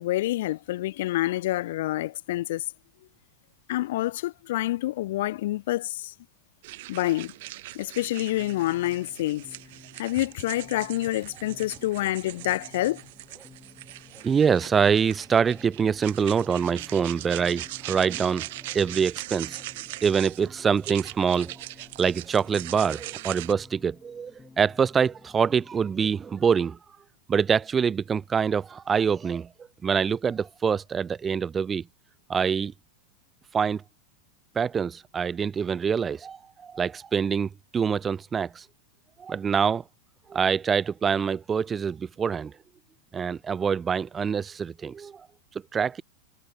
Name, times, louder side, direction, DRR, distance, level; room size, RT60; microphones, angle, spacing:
voice 1, 0.0-2.6 3.7-6.1 6.9-7.3 7.7-9.5 10.0-13.0, left 16 dB, 55° left, 0.5 m, -27 dB
sound 1, 6.6-23.5, right 19 dB, 50° right, 1.6 m, -41 dB
sound 2, 8.0-26.5, left 4 dB, 10° left, 6.5 m, -53 dB
sound 3, 10.2-11.3 11.7-12.6 12.9-13.6 13.9-14.8 15.1-16.0 16.4-16.7 17.3-17.5 18.0-18.9 19.5-19.7 20.6-22.4, right 1 dB, 5° right, 6.7 m, -59 dB
voice 2, 14.2-18.5 18.7-19.6 20.0-21.5 22.0-26.8 27.3-29.5 29.8-31.8 32.3-32.7 33.5-33.8 34.6-38.7 39.2-39.8 40.3-42.5 43.1-45.3 45.7-46.0, right 6 dB, 20° right, 0.4 m, -25 dB
figure-of-eight pair, 90°, 0 cm